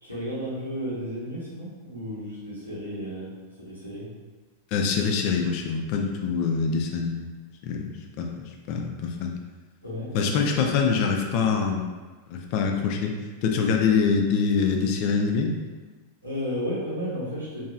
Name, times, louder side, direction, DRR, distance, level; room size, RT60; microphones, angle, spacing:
voice 1, 0.0-3.3 3.6-4.1 9.8-10.1 16.2-17.7, equal, 90° right, -9 dB, 0.9 m, -33 dB
voice 2, 4.7-7.3 7.6-9.3 10.1-11.9 12.3-13.1 13.4-15.6, left 5 dB, 45° left, 2 dB, 0.3 m, -25 dB
2.8 x 2.2 x 2.4 m, 1.3 s
figure-of-eight pair, 90°, 0 cm